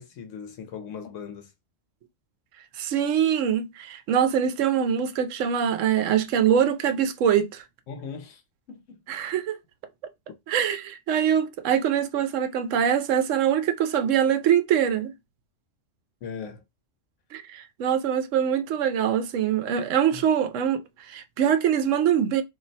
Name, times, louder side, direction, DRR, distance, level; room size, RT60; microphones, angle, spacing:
voice 1, 0.0-1.5 7.9-8.4 8.7-9.0 16.2-16.6 20.1-20.2, left 6 dB, 75° left, 1.1 m, -39 dB
voice 2, 2.8-7.6 9.1-9.6 10.5-15.1 17.3-22.4, right 9 dB, 80° right, 0.9 m, -23 dB
2.7 x 2.1 x 3.9 m
omnidirectional pair, 1.3 m